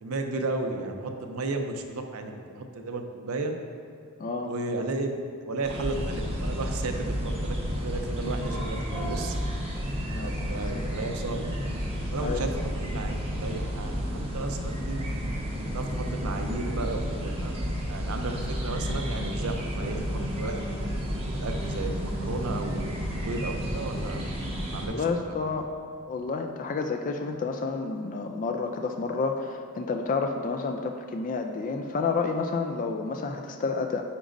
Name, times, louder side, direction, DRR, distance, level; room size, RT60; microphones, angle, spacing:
voice 1, 0.0-3.5 4.4-5.1 5.4-9.3 10.2-11.6 12.1-15.1 15.7-20.6 21.3-24.2 24.7-25.1, right 2 dB, 75° right, 5 dB, 0.6 m, -34 dB
voice 2, 4.2-4.5 10.1-10.6 12.2-12.5 24.9-25.7 26.1-34.0, left 4 dB, 35° left, 4 dB, 0.3 m, -30 dB
sound 1, 5.6-24.9, equal, 25° right, 1.1 m, -31 dB
9.8 x 5.0 x 2.6 m, 2.5 s
head